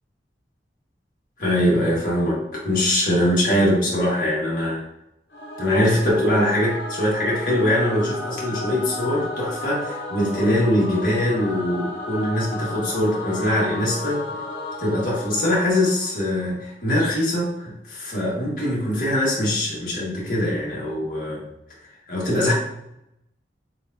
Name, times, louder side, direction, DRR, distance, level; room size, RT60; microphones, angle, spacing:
voice 1, 1.4-4.8 5.6-14.2 14.8-21.5 22.1-22.5, left 1 dB, 50° left, -6 dB, 1.7 m, -22 dB
Singing / Musical instrument, 5.3-16.6, left 2 dB, 75° left, 0.9 m, -33 dB
6.7 x 2.5 x 2.7 m, 0.82 s
head